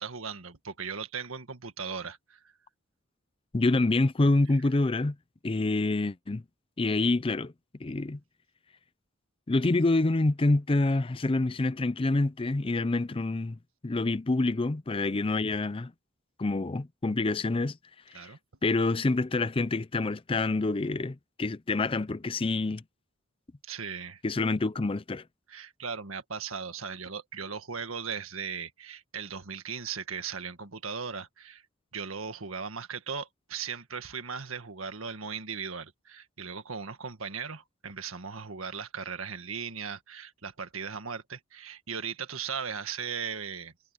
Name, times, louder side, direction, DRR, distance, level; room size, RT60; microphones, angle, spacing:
voice 1, 0.0-2.5 18.1-18.4 23.6-24.2 25.5-31.6 31.9-43.7, right 6 dB, 90° right, 1.7 m, -38 dB
voice 2, 3.5-5.1 5.4-6.4 6.8-7.5 7.8-8.2 9.5-13.6 13.8-15.9 16.4-17.8 18.1-18.3 18.6-22.8 24.2-25.2, left 2 dB, 25° left, 0.5 m, -27 dB
head